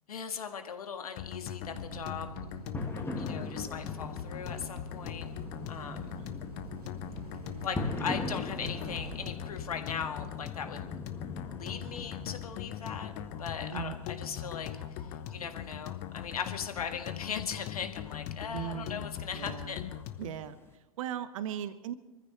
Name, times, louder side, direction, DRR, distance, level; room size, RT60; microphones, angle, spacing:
voice 1, 0.1-2.5 3.2-5.3 5.7-6.2 7.5-10.8 11.4-13.1 13.4-14.8 15.3-19.8, left 7 dB, 75° left, 6 dB, 1.7 m, -39 dB
sound 1, 1.2-20.4, left 11 dB, 45° left, 1.0 m, -41 dB
sound 2, 1.6-9.7, right 5 dB, 85° right, 0.7 m, -47 dB
sound 3, 2.7-20.7, left 3 dB, 10° left, 1.9 m, -43 dB
voice 2, 13.7-14.0 18.5-19.1 19.3-19.8 20.2-21.9, right 11 dB, 60° right, 13 dB, 1.0 m, -39 dB
25.0 x 14.5 x 3.2 m, 0.98 s
figure-of-eight pair, 90°, 19 cm